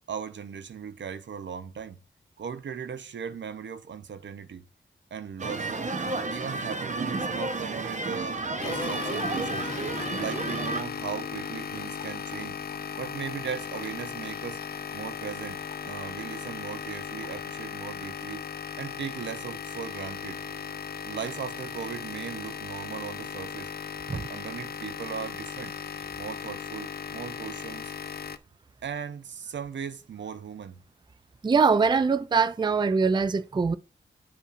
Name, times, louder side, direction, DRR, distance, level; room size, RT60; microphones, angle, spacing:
voice 1, 0.1-2.0 2.4-4.6 5.1-5.7 6.3-9.7 10.2-12.6 13.0-14.6 14.9-18.4 18.8-20.4 21.0-23.7 24.1-25.7 26.2-27.9 28.8-30.8, right 7 dB, 70° right, 0.6 m, -38 dB
sound 1, 5.4-10.8, right 3 dB, 40° right, 0.9 m, -31 dB
sound 2, 8.6-28.4, left 7 dB, 55° left, 0.5 m, -37 dB
voice 2, 31.4-33.8, right 5 dB, 25° right, 0.4 m, -23 dB
10.0 x 5.4 x 2.5 m
cardioid pair, 45°, 19 cm